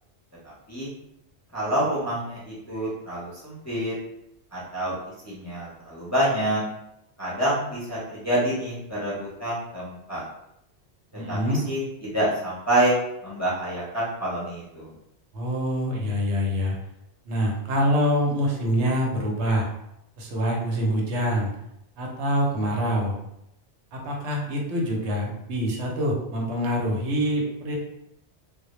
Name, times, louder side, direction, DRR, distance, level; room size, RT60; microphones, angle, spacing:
voice 1, 0.4-0.9 1.5-3.9 4.5-5.0 5.2-6.6 7.2-8.0 8.2-10.2 11.3-11.4 11.7-13.0 13.2-14.9, right 1 dB, 20° left, -8 dB, 0.5 m, -27 dB
voice 2, 11.1-11.6 15.3-16.8 17.3-19.7 20.2-21.5 22.0-23.2 23.9-27.8, equal, 85° right, 0 dB, 0.9 m, -25 dB
2.1 x 2.0 x 2.9 m, 0.81 s
omnidirectional pair, 1.1 m